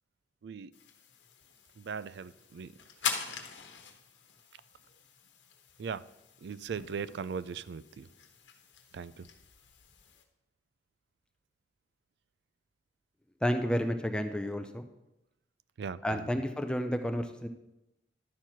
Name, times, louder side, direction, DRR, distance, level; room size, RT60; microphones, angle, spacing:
sound 1, 0.7-10.2, left 7 dB, 85° left, 1.1 m, -43 dB
voice 1, 1.8-2.7 5.8-6.1 6.4-8.1 8.9-9.3 15.8-16.4, right 6 dB, 65° right, 0.3 m, -39 dB
voice 2, 13.4-14.9 16.0-17.5, equal, 5° left, 0.4 m, -31 dB
11.5 x 4.5 x 5.8 m
head